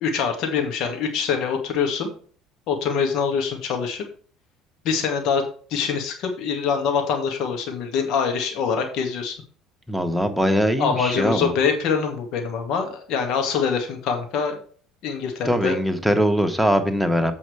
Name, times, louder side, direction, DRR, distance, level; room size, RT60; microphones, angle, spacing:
voice 1, 0.0-2.1 2.7-4.0 4.8-5.5 5.7-9.4 10.8-14.6 15.0-15.8, left 6 dB, 60° left, 4 dB, 2.0 m, -24 dB
voice 2, 9.9-11.5 15.4-17.3, equal, ahead, 4 dB, 1.5 m, -21 dB
8.1 x 5.6 x 4.8 m, 0.44 s
figure-of-eight pair, 60°, 0 cm